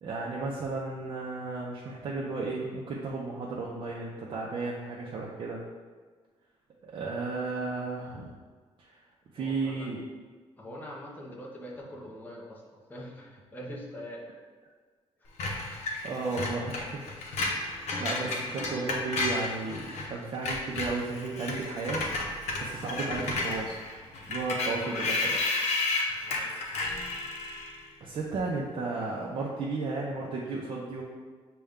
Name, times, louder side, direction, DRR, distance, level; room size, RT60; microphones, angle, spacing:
voice 1, 0.0-5.6 6.8-8.3 8.9-9.0 9.3-10.0 16.0-17.0 18.0-22.1 22.6-23.8 24.3-25.4 28.0-31.0, right 3 dB, 45° right, -5 dB, 0.5 m, -34 dB
voice 2, 9.4-9.9 10.6-12.6 12.9-14.3 18.7-19.0 26.2-26.5, equal, 15° left, -3 dB, 0.6 m, -43 dB
Screech, 15.4-20.1 20.3-27.8, left 2 dB, 80° left, 0.7 m, -32 dB
6.5 x 2.3 x 3.5 m, 1.5 s
cardioid pair, 175°, 11 cm